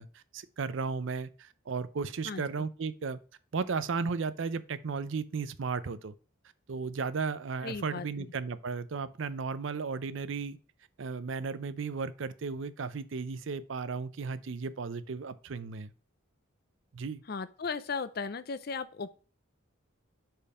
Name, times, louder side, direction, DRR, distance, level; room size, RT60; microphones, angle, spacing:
voice 1, 0.0-3.2 3.5-6.1 6.7-10.6 11.0-15.9 16.9-17.2, right 5 dB, 65° right, 0.5 m, -35 dB
voice 2, 7.6-8.3 17.3-19.1, left 5 dB, 45° left, 0.5 m, -36 dB
5.2 x 4.5 x 4.9 m
head